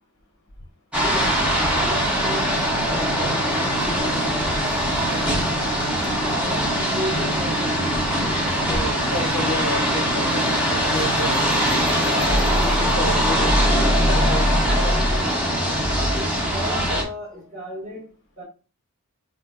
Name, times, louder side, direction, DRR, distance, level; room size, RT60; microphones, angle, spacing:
sound 1, 0.9-17.0, equal, 5° right, 0.7 m, -21 dB
voice 1, 1.0-5.7 6.2-7.8 15.9-18.0 18.4-18.5, equal, 35° right, 1.4 m, -35 dB
voice 2, 8.7-11.4 12.0-15.0, left 1 dB, 60° left, 0.8 m, -31 dB
3.9 x 2.4 x 2.3 m
head